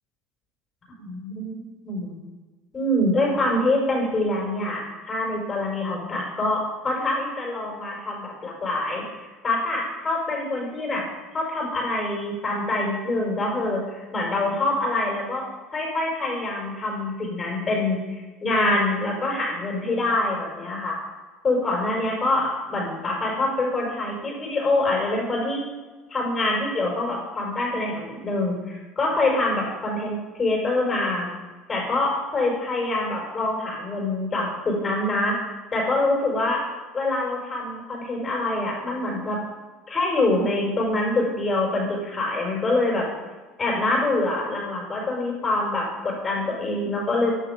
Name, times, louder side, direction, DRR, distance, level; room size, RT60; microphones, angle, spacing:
voice 1, 1.0-2.2 2.7-11.1 11.3-15.4 15.7-21.0 21.4-25.6 26.1-31.3 31.7-35.4 35.7-36.6 36.9-39.4 39.9-43.1 43.6-47.3, left 2 dB, 30° left, -2 dB, 5.5 m, -25 dB
14.5 x 10.5 x 5.3 m, 1.3 s
supercardioid pair, 100°, 0 cm